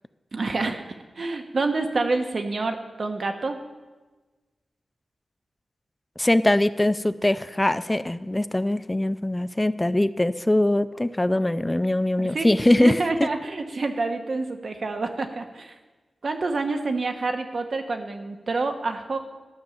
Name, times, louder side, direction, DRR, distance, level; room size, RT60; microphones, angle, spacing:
voice 1, 0.3-0.8 1.2-3.6 12.2-12.5 12.8-15.7 16.2-19.2, right 3 dB, 50° right, 5 dB, 1.1 m, -27 dB
voice 2, 6.2-13.3, left 1 dB, 15° left, 14 dB, 0.3 m, -22 dB
13.0 x 6.2 x 7.0 m, 1.3 s
wide cardioid pair, 120°, 0 cm